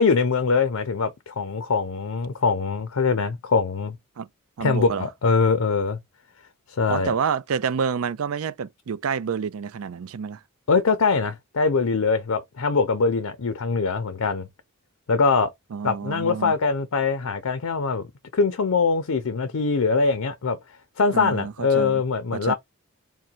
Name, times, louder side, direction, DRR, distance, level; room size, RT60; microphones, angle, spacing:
voice 1, 0.0-4.0 4.6-6.0 6.7-7.1 10.7-14.5 15.1-15.5 15.8-18.1 18.3-20.6 21.0-22.5, left 4 dB, 80° left, 0.6 m, -22 dB
voice 2, 4.6-5.1 6.9-10.4 15.7-16.5 21.1-22.0 22.3-22.5, right 6 dB, 70° right, 0.4 m, -28 dB
3.7 x 2.2 x 4.3 m
head